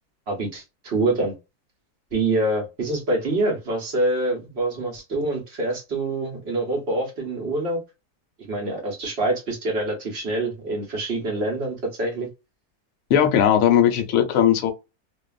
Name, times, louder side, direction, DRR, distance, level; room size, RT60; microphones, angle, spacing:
voice 1, 0.3-1.4 2.1-7.8 8.5-12.3, right 2 dB, 50° right, 1.0 m, -25 dB
voice 2, 13.1-14.7, left 9 dB, 65° left, 0.8 m, -18 dB
2.6 x 2.3 x 2.3 m
omnidirectional pair, 1.6 m